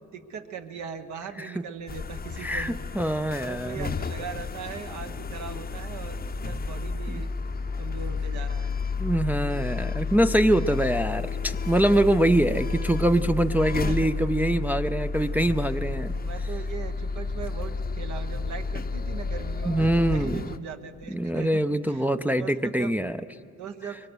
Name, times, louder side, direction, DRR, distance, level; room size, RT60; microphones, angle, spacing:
voice 1, 0.1-3.1 3.4-7.3 7.8-8.8 13.8-14.1 15.7-15.8 16.2-22.1 22.4-23.0 23.6-24.0, right 7 dB, 70° right, 6 dB, 1.3 m, -39 dB
sound 1, 1.9-20.6, left 4 dB, 30° left, 0.7 m, -31 dB
voice 2, 2.4-3.9 7.1-7.2 9.0-16.1 19.7-20.4 21.1-23.2, right 1 dB, 5° right, 8 dB, 0.4 m, -24 dB
23.0 x 22.5 x 6.3 m, 2.6 s
cardioid pair, 90°, 30 cm